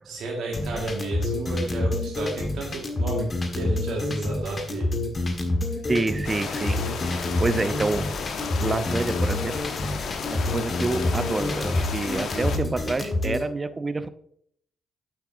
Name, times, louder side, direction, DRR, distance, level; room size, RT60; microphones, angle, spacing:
voice 1, 0.0-4.9, right 2 dB, 60° right, -1 dB, 1.8 m, -32 dB
sound 1, 0.5-13.4, left 2 dB, 35° left, 1.7 m, -28 dB
voice 2, 5.9-8.1 8.6-9.7 10.3-14.1, right 3 dB, 30° right, 13 dB, 0.7 m, -28 dB
sound 2, 6.2-12.6, left 5 dB, 55° left, 1.0 m, -33 dB
9.5 x 8.3 x 2.7 m, 0.68 s
hypercardioid pair, 45°, 0 cm